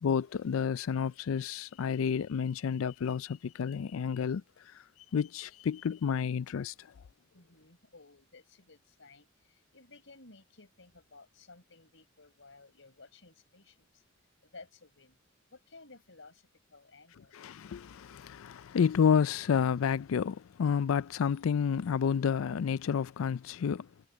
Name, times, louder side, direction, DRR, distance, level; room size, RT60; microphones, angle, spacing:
voice 1, 0.0-4.4 5.1-6.7 17.3-23.9, left 7 dB, 85° left, 0.4 m, -30 dB
voice 2, 7.3-14.0 14.4-15.2 15.5-17.3, left 3 dB, 65° left, 5.5 m, -56 dB
head